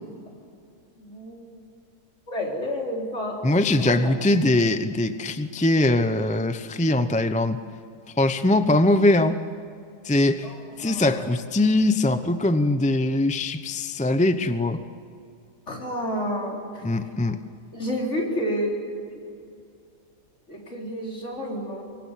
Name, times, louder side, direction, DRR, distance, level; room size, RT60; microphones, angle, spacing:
voice 1, 0.9-1.4 2.3-3.5 3.8-4.1 10.4-11.2 15.7-16.8 17.7-19.2 20.5-21.8, equal, 45° left, -1 dB, 4.7 m, -30 dB
voice 2, 3.4-7.6 8.2-9.4 10.0-10.5 10.8-14.9 16.8-17.4, left 2 dB, 10° left, 10 dB, 0.4 m, -21 dB
24.5 x 24.0 x 7.5 m, 2.4 s
omnidirectional pair, 1.7 m